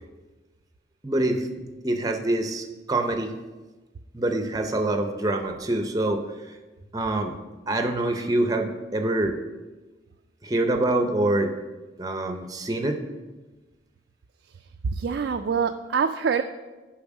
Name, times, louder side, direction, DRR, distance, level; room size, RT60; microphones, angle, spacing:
voice 1, 1.0-3.3 4.1-6.6 6.9-7.3 7.7-9.4 10.4-11.5 12.0-13.0, right 2 dB, 20° right, 5 dB, 0.6 m, -25 dB
voice 2, 14.8-16.4, right 6 dB, 65° right, 6 dB, 0.3 m, -25 dB
7.1 x 4.7 x 6.0 m, 1.2 s
head